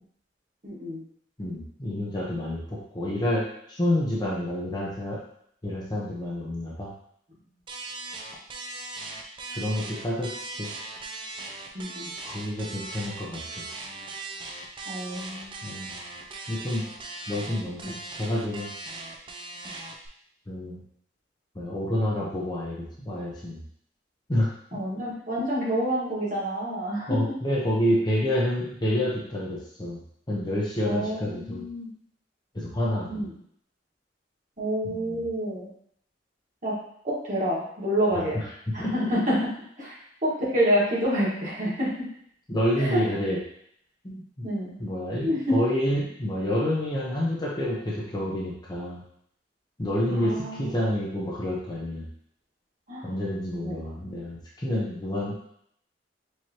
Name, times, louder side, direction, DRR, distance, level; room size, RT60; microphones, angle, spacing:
voice 1, 0.6-1.0 11.7-12.1 14.8-16.0 17.8-17.9 24.7-27.2 30.8-31.9 33.1-33.4 34.6-35.7 36.6-36.7 37.0-38.4 38.7-39.4 39.8-42.1 42.8-43.0 44.4-44.7 45.2-45.6 50.1-50.7 52.9-53.1 53.6-53.7, equal, 45° right, -7 dB, 1.6 m, -28 dB
voice 2, 1.4-5.2 5.6-6.9 9.5-10.3 10.6-10.7 12.2-13.4 15.6-15.9 16.5-16.9 17.3-18.7 20.5-20.8 21.5-23.6 24.3-24.5 27.1-30.0 30.3-31.6 32.5-33.2 34.8-35.2 38.1-38.4 38.8-38.9 42.5-43.4 44.0-44.5 44.8-49.0 49.8-52.1 53.0-55.3, left 1 dB, 25° left, -4 dB, 0.8 m, -28 dB
sound 1, 7.7-20.1, right 3 dB, 30° right, 0.4 m, -39 dB
4.7 x 2.9 x 2.9 m, 0.69 s
head